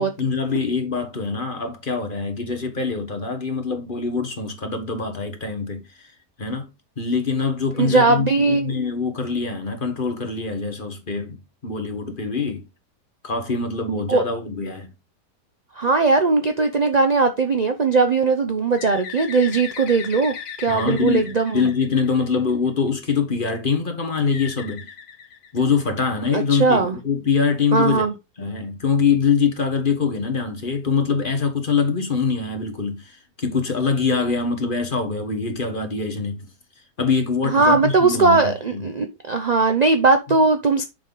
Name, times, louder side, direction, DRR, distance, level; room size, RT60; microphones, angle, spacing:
voice 1, 0.0-6.1 6.4-6.7 7.0-12.6 13.2-14.9 20.7-24.9 25.5-28.0 28.4-36.5 37.0-38.9, left 5 dB, 35° left, 1.3 m, -24 dB
voice 2, 7.8-8.7 13.9-14.2 15.8-21.7 26.3-27.0 27.7-28.1 37.4-40.8, right 3 dB, 45° right, 0.5 m, -19 dB
Bird, 18.8-22.5 24.3-26.0, left 7 dB, 60° left, 1.3 m, -37 dB
6.9 x 5.6 x 3.9 m
omnidirectional pair, 1.8 m